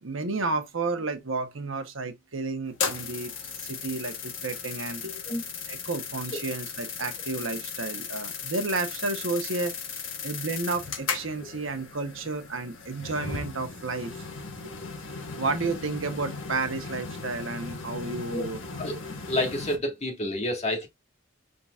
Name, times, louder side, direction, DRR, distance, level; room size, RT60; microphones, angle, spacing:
voice 1, 0.0-3.3 3.6-5.2 5.7-14.2 14.6-14.7 15.4-18.6, right 3 dB, 80° right, 1.0 m, -32 dB
sound 1, 2.7-19.8, left 5 dB, 80° left, 1.2 m, -36 dB
voice 2, 19.3-20.9, left 1 dB, 35° left, 1.6 m, -29 dB
5.6 x 3.8 x 2.4 m
head